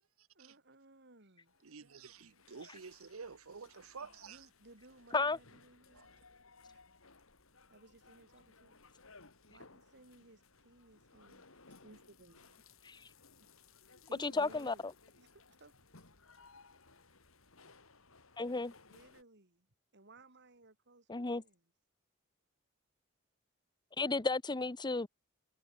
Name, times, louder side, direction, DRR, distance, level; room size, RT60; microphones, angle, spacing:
voice 1, 0.3-1.5 4.2-6.1 7.7-8.8 9.5-11.5 11.8-12.6 14.1-14.9 15.2-15.7 18.9-19.7 19.9-21.6, right 2 dB, 55° right, 4.0 m, -60 dB
sound 1, 1.5-19.2, left 4 dB, 75° left, 4.1 m, -62 dB
voice 2, 1.7-4.4, right 5 dB, 85° right, 0.9 m, -49 dB
voice 3, 14.2-14.7 18.4-18.7 21.1-21.4 24.0-25.1, left 3 dB, 20° left, 0.8 m, -33 dB
head